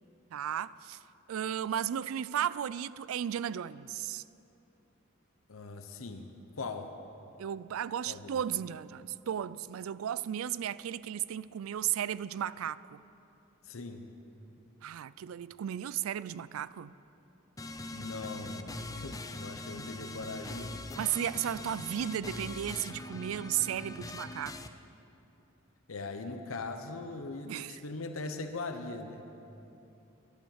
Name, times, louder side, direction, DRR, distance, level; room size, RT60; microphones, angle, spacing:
voice 1, 0.3-1.0 1.3-4.2 7.4-13.0 14.8-16.9 21.0-24.6 27.5-27.8, right 10 dB, 90° right, 0.3 m, -34 dB
voice 2, 5.5-6.3 6.6-6.9 8.1-8.4 13.7-14.0 17.9-20.8 25.9-29.2, left 3 dB, 85° left, 0.9 m, -40 dB
sound 1, 17.6-24.7, left 2 dB, 15° left, 0.5 m, -42 dB
12.0 x 11.5 x 7.2 m
head